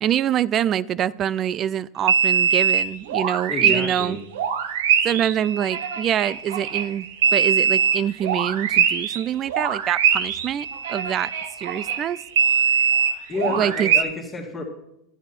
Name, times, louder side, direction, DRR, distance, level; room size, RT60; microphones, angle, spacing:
voice 1, 0.0-4.2 5.0-11.3 11.6-12.2 13.6-13.9, right 10 dB, 40° right, 21 dB, 0.4 m, -25 dB
sound 1, 2.1-4.1 4.3-9.2 9.5-14.0, right 7 dB, 70° right, 0.9 m, -22 dB
voice 2, 3.5-4.2 13.3-14.6, left 3 dB, 20° left, -4 dB, 2.1 m, -29 dB
10.5 x 10.0 x 4.4 m, 0.82 s
hypercardioid pair, 90°, 0 cm